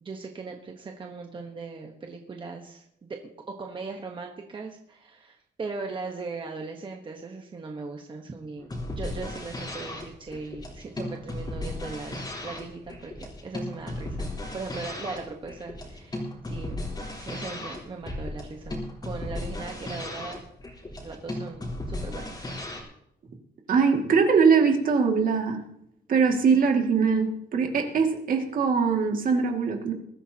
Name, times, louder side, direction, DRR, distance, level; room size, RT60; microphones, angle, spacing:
voice 1, 0.0-13.1 13.4-16.8 17.2-20.4 21.0-22.5, right 4 dB, 30° right, 2 dB, 1.2 m, -39 dB
sound 1, 8.6-22.8, left 1 dB, 25° left, 3.7 m, -35 dB
voice 2, 23.7-25.6 26.1-29.9, right 5 dB, 55° right, 3 dB, 2.3 m, -22 dB
21.5 x 13.0 x 2.9 m, 0.77 s
cardioid pair, 150°, 17 cm